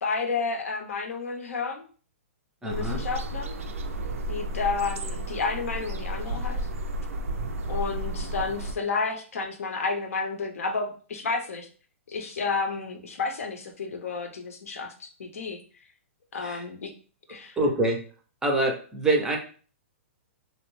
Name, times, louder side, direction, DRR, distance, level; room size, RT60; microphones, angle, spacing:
voice 1, 0.0-1.8 2.6-3.5 4.3-6.6 7.7-11.7 12.1-15.6 16.3-16.9 17.3-17.6, left 4 dB, 85° left, 5 dB, 0.6 m, -31 dB
voice 2, 2.6-3.0 16.4-16.6 17.6-18.0 18.4-19.4, right 2 dB, 10° right, 2 dB, 0.4 m, -25 dB
sound 1, 2.7-8.8, right 1 dB, 85° right, 0.4 m, -32 dB
2.7 x 2.0 x 3.0 m, 0.39 s
hypercardioid pair, 140°, 7 cm